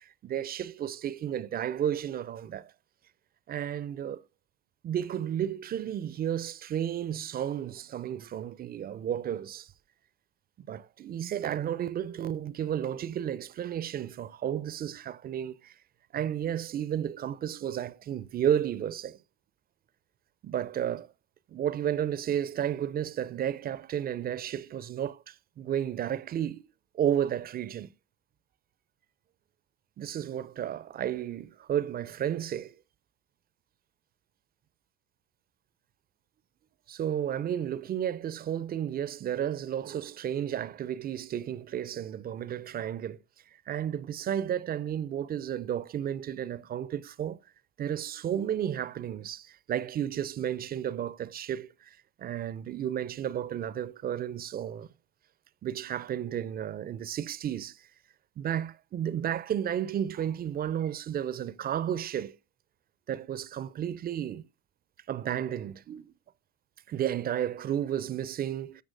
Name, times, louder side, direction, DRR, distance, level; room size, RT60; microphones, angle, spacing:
voice 1, 0.0-2.7 3.5-4.2 4.8-9.7 10.6-15.7 16.1-19.2 20.4-21.1 21.5-26.7 26.9-27.9 30.0-32.8 36.9-43.2 43.7-47.4 47.8-54.9 55.6-57.9 58.4-62.4 63.1-64.5 65.1-66.1 66.9-68.8, right 10 dB, 25° right, 0.4 m, -32 dB
14.5 x 6.2 x 2.5 m
figure-of-eight pair, 60°, 43 cm